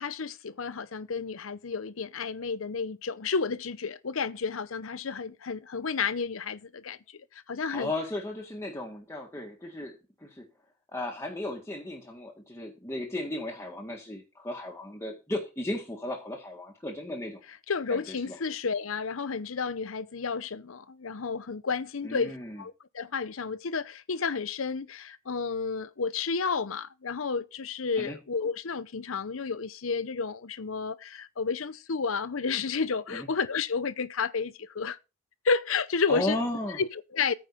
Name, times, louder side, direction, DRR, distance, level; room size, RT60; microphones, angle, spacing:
voice 1, 0.0-7.9 17.7-35.0 35.4-36.4 36.8-37.3, left 5 dB, 75° left, 0.7 m, -31 dB
voice 2, 7.7-10.5 10.9-17.4 17.9-18.4 22.0-22.6 28.0-28.2 33.1-33.3 36.1-36.8, left 1 dB, 15° left, 1.7 m, -35 dB
9.4 x 5.4 x 6.9 m
head